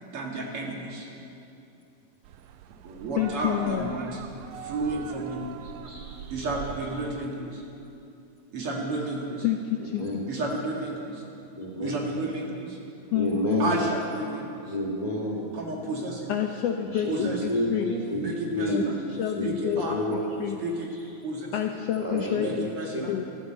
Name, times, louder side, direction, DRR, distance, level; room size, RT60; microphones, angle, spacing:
voice 1, 0.1-1.1 2.8-4.2 4.5-5.4 6.3-7.6 8.5-9.5 10.3-11.2 11.8-12.8 13.6-14.7 15.5-16.3 17.1-17.4 18.1-18.9 19.4-20.0 20.6-20.9 21.2-21.5 22.3-23.1, right 2 dB, 50° right, -1 dB, 2.7 m, -32 dB
sound 1, 2.2-7.3, right 10 dB, 85° right, 2.0 m, -43 dB
voice 2, 3.2-3.9 9.4-10.3 13.1-13.7 16.3-17.8 18.7-18.8 19.2-20.6 21.5-22.7 23.1-23.2, left 10 dB, 75° left, 5 dB, 1.5 m, -28 dB
voice 3, 5.6-6.2 9.8-10.2 11.6-12.2 13.1-13.8 14.6-15.5 16.8-20.2 20.5-20.6 22.0-22.5 22.9-23.2, equal, 15° left, -1 dB, 1.7 m, -31 dB
14.0 x 13.0 x 7.8 m, 2.7 s
omnidirectional pair, 3.3 m